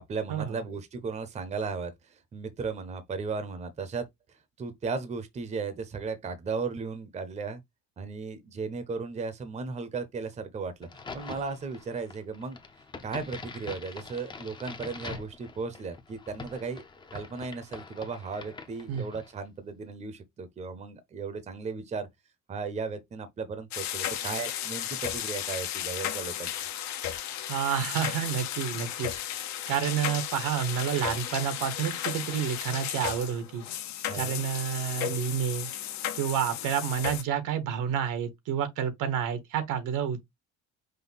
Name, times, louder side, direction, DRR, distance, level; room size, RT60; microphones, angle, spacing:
voice 1, 0.1-4.1 4.6-7.6 8.0-12.6 13.0-16.8 17.1-22.1 22.5-26.6 34.1-34.4, right 4 dB, 25° right, 0.7 m, -36 dB
Crack, 10.8-19.4, left 4 dB, 15° left, 0.5 m, -44 dB
sound 1, 23.7-37.2, left 11 dB, 65° left, 0.8 m, -34 dB
voice 2, 27.5-29.1 29.7-33.6 34.1-35.7 36.1-40.2, right 8 dB, 85° right, 1.2 m, -29 dB
5.4 x 2.2 x 3.9 m
cardioid pair, 170°, 30 cm